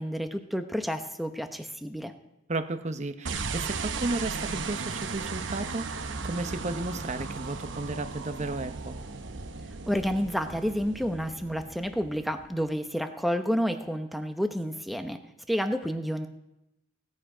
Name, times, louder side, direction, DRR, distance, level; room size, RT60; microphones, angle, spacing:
voice 1, 0.0-2.1 9.9-15.2 15.5-16.3, equal, ahead, 6 dB, 0.8 m, -30 dB
voice 2, 2.5-9.0, right 2 dB, 35° right, 9 dB, 0.8 m, -33 dB
sound 1, 3.3-12.6, right 4 dB, 75° right, 0.9 m, -36 dB
17.0 x 9.7 x 5.0 m, 0.91 s
head